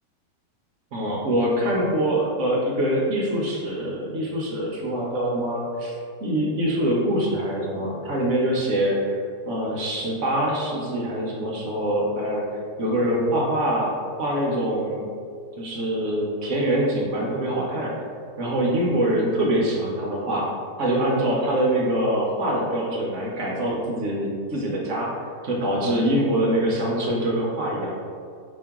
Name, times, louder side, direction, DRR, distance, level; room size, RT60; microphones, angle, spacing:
voice 1, 0.9-12.4 12.8-13.9 14.2-15.1 15.6-17.9 18.4-20.5 20.8-28.0, right 1 dB, 60° right, -3 dB, 0.9 m, -24 dB
5.1 x 2.8 x 3.6 m, 2.3 s
omnidirectional pair, 1.9 m